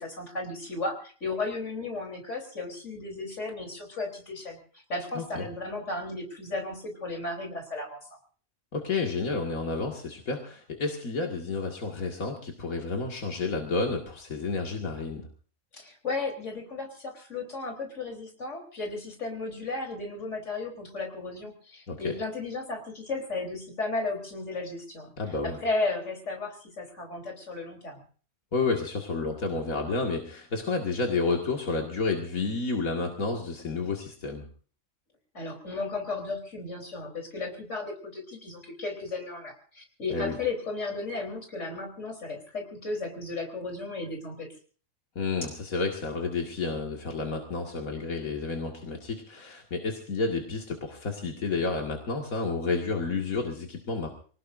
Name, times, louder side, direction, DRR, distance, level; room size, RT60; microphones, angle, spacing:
voice 1, 0.0-8.1 15.7-25.1 25.4-28.0 35.3-44.5, left 3 dB, 60° left, 3 dB, 4.2 m, -34 dB
voice 2, 5.1-5.5 8.7-15.3 21.9-22.1 25.2-25.6 28.5-34.5 40.1-40.4 45.2-54.1, left 4 dB, 85° left, 1 dB, 2.5 m, -30 dB
25.5 x 18.0 x 2.6 m, 0.41 s
omnidirectional pair, 1.4 m